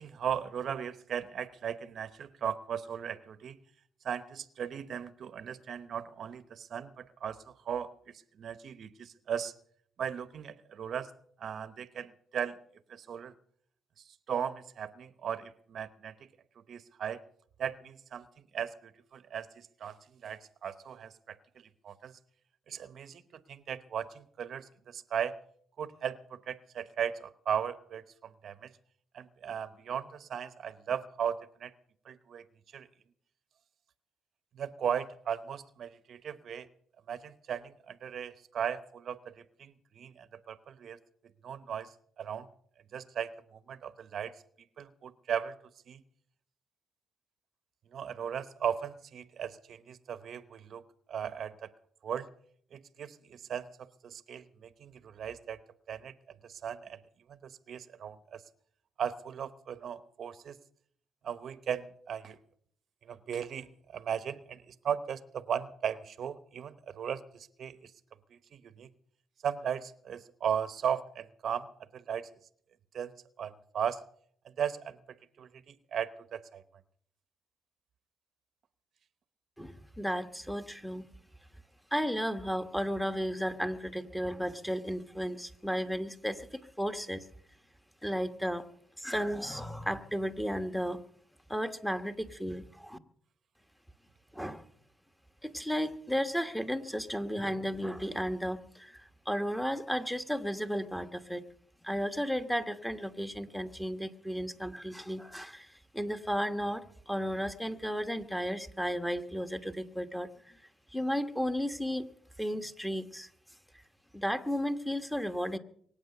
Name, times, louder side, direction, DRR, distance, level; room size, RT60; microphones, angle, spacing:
voice 1, 0.0-3.6 4.0-7.9 8.4-9.5 10.0-11.1 11.4-12.6 12.9-13.3 14.0-16.1 16.6-17.2 17.6-18.3 18.5-22.1 22.7-25.3 25.8-28.7 29.1-31.7 32.0-32.4 32.7-32.9 34.5-36.7 37.1-41.0 41.4-42.5 42.9-44.4 44.8-45.6 45.9-46.0 47.9-50.8 51.1-51.7 52.0-52.3 52.7-53.7 54.0-55.6 55.9-56.1 56.4-57.0 57.3-58.4 59.0-60.6 61.2-62.4 63.0-67.9 68.3-68.9 69.4-71.7 71.9-72.3 72.9-74.0 74.4-75.0 75.4-76.6, right 8 dB, 60° right, 13 dB, 0.9 m, -37 dB
voice 2, 79.6-81.0 81.9-87.2 88.0-88.7 89.0-91.0 91.5-93.0 94.3-94.6 95.4-99.0 99.2-101.4 101.8-105.7 105.9-110.6 110.9-112.1 112.4-113.3 114.1-115.6, equal, 5° left, 8 dB, 1.4 m, -34 dB
23.5 x 8.9 x 6.7 m, 0.63 s
cardioid pair, 90°, 0 cm